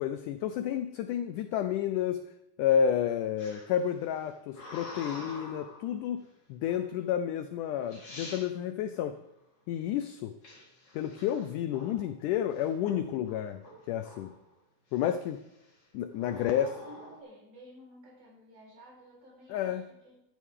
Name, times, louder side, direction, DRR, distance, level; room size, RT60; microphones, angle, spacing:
voice 1, 0.0-2.2 2.6-6.2 6.5-9.2 9.7-10.3 10.9-14.3 14.9-15.4 15.9-16.7 19.5-19.9, left 9 dB, 80° left, 9 dB, 1.9 m, -30 dB
sound 1, 3.4-5.9 6.7-7.0 7.6-7.7 7.9-8.4 10.4-12.1 12.5-13.0 13.3-14.4 14.9-15.3 16.1-17.2, left 1 dB, 40° left, 4.5 m, -46 dB
voice 2, 16.3-20.2, right 1 dB, 60° right, -2 dB, 6.1 m, -52 dB
13.5 x 13.0 x 3.7 m, 0.87 s
omnidirectional pair, 4.1 m